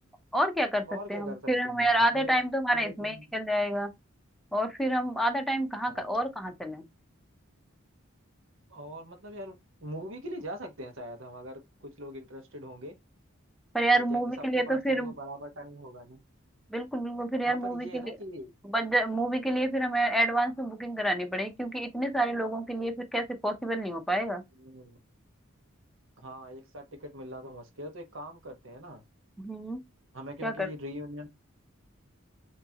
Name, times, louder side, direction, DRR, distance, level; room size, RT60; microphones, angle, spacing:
voice 1, 0.3-0.8 1.1-3.9 4.5-6.8 13.7-15.1 16.7-18.1 18.7-24.4 29.4-29.8 30.4-30.7, right 1 dB, ahead, 0.7 m, -28 dB
voice 2, 0.9-2.4 2.7-3.2 5.9-6.0 8.7-12.9 13.9-14.2 14.5-16.2 17.5-18.5 24.6-25.0 26.2-29.0 30.1-31.3, equal, 65° right, 1.3 m, -42 dB
6.0 x 3.0 x 2.9 m
head